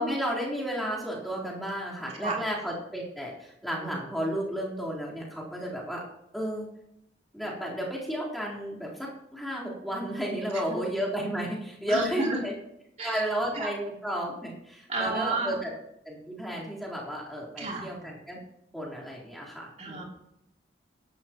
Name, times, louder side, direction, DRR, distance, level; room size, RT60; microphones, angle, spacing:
voice 1, 0.0-6.0 6.3-6.7 7.3-12.5 13.0-15.7 16.0-18.4 18.7-20.0, equal, ahead, -6 dB, 3.7 m, -32 dB
voice 2, 11.9-12.4 13.0-13.2 13.5-13.7 14.9-15.5 17.6-17.9 19.8-20.0, right 3 dB, 40° right, -2 dB, 3.1 m, -31 dB
17.0 x 12.0 x 3.0 m, 0.81 s
head